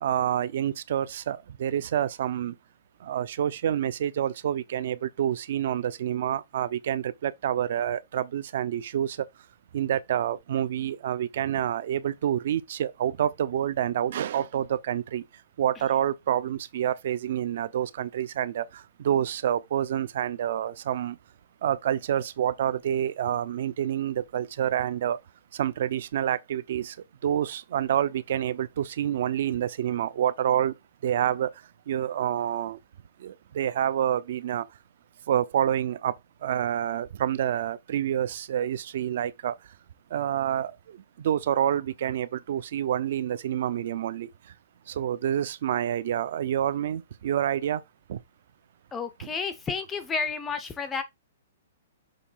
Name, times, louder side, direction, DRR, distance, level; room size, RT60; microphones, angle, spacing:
voice 1, 0.0-2.5 3.1-9.2 9.7-15.2 15.6-18.6 19.0-21.1 21.6-25.2 25.6-26.9 27.2-30.7 31.0-31.5 31.9-32.8 33.2-34.6 35.3-36.1 36.4-39.5 40.1-40.7 41.2-44.3 45.0-47.8 48.1-48.2, right 10 dB, 45° right, 0.6 m, -27 dB
voice 2, 48.9-51.0, left 5 dB, 10° left, 0.5 m, -31 dB
6.8 x 3.1 x 5.6 m
hypercardioid pair, 180°, 0 cm